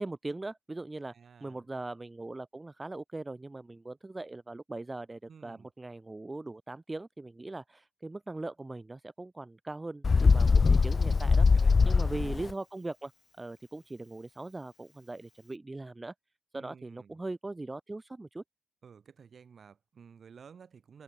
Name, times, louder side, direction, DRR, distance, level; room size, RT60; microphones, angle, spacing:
voice 1, 0.0-1.1 1.4-11.5 11.8-13.1 13.4-16.1 16.5-18.4, right 2 dB, 15° right, 1.2 m, -40 dB
voice 2, 1.1-1.7 5.3-5.7 10.8-12.4 16.5-17.2 18.8-21.0, right 6 dB, 45° right, 7.5 m, -54 dB
Bird, 10.0-12.5, left 4 dB, 35° left, 0.5 m, -22 dB
cardioid pair, 90°, 0 cm